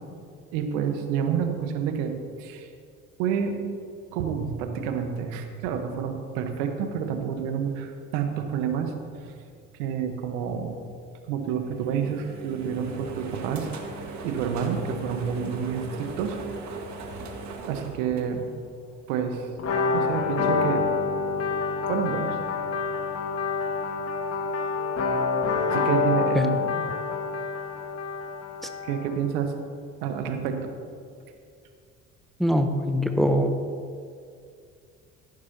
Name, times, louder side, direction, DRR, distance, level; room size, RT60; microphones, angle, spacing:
voice 1, 0.5-2.7 3.2-3.5 4.1-9.3 9.8-10.7 11.3-13.7 14.2-16.7 17.7-18.5 19.1-19.5 19.9-20.8 21.9-22.3 23.4-23.6 25.7-26.8 28.8-29.5 30.0-30.7, right 7 dB, 65° right, 6 dB, 1.3 m, -29 dB
sound 1, 11.6-18.9, right 3 dB, 45° right, 1.8 m, -39 dB
sound 2, 19.6-29.2, left 4 dB, 40° left, 1.9 m, -27 dB
voice 2, 32.4-33.5, equal, ahead, 6 dB, 0.8 m, -22 dB
14.0 x 11.5 x 2.9 m, 2.3 s
hypercardioid pair, 60°, 39 cm